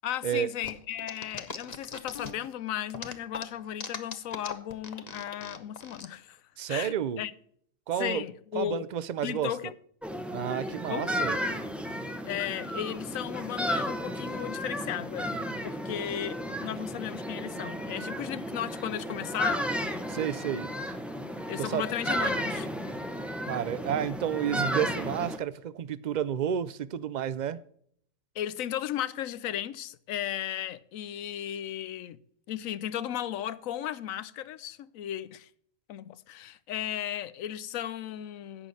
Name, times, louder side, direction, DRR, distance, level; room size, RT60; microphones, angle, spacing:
voice 1, 0.0-6.4 6.7-7.3 8.0-8.9 9.2-9.7 10.8-11.1 12.3-15.4 15.6-19.7 21.5-22.7 28.4-32.2 32.5-35.5 35.9-38.7, left 11 dB, 85° left, 1.0 m, -35 dB
sound 1, 0.6-2.5 2.9-6.1, left 5 dB, 35° left, 0.9 m, -39 dB
voice 2, 6.6-7.2 7.9-8.2 8.5-9.5 10.3-11.4 20.1-20.7 21.6-21.9 23.5-27.6, right 9 dB, 65° right, 0.4 m, -31 dB
sound 2, 10.0-25.4, equal, ahead, 0.9 m, -33 dB
11.5 x 8.3 x 4.1 m
omnidirectional pair, 1.4 m